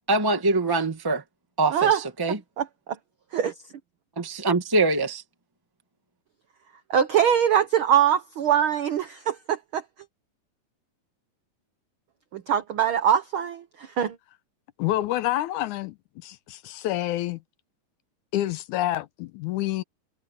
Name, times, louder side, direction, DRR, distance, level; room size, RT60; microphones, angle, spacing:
voice 1, 0.1-1.2 1.6-1.9 2.2-2.4 4.2-5.2, right 2 dB, 25° right, 0.4 m, -23 dB
voice 2, 6.9-9.8 12.3-14.2, right 9 dB, 70° right, 1.2 m, -22 dB
voice 3, 14.8-16.0 16.2-17.4 18.3-19.8, left 14 dB, 80° left, 2.1 m, -28 dB
omnidirectional pair, 3.6 m